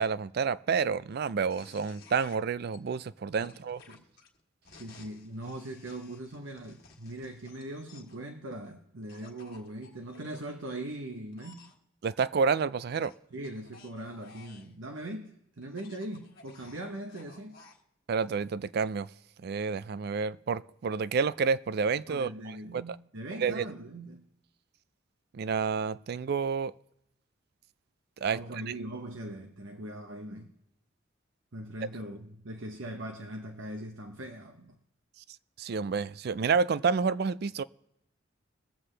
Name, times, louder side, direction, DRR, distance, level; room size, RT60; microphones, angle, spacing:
voice 1, 0.0-3.8 12.0-13.1 18.1-19.1 19.4-23.0 23.4-23.7 25.3-26.7 28.2-28.7 35.6-37.6, right 5 dB, 55° right, 0.4 m, -29 dB
sound 1, 1.5-2.8 3.4-8.2 9.1-10.5 11.3-11.7 13.0-14.7 15.6-17.8, left 4 dB, 50° left, 1.6 m, -55 dB
voice 2, 4.7-11.6 13.3-17.6 22.1-24.3 28.3-30.5 31.5-34.8, right 1 dB, 80° right, 1.0 m, -41 dB
22.5 x 7.6 x 3.3 m
head